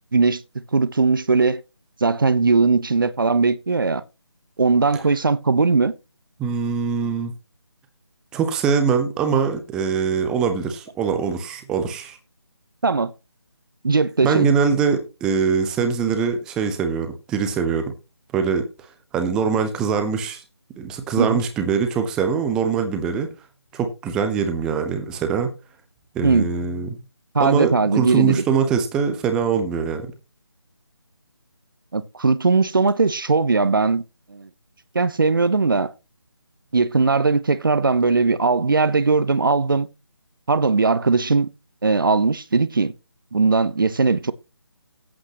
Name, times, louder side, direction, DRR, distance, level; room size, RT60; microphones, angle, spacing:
voice 1, 0.1-0.4 0.7-1.6 2.0-4.0 4.6-5.9 12.8-13.1 13.8-14.5 21.2-21.4 26.2-26.5 27.3-28.4 31.9-34.0 34.3-34.5 34.9-35.9 36.7-39.9 40.5-41.5 41.8-42.9 43.3-44.3, right 4 dB, 50° right, 0.9 m, -19 dB
voice 2, 6.4-7.3 8.3-12.2 14.2-17.9 18.3-18.7 19.1-20.4 20.8-23.3 23.7-25.5 26.1-27.0 27.4-30.1, right 6 dB, 5° right, 0.7 m, -22 dB
17.0 x 8.4 x 3.0 m
figure-of-eight pair, 155°, 14 cm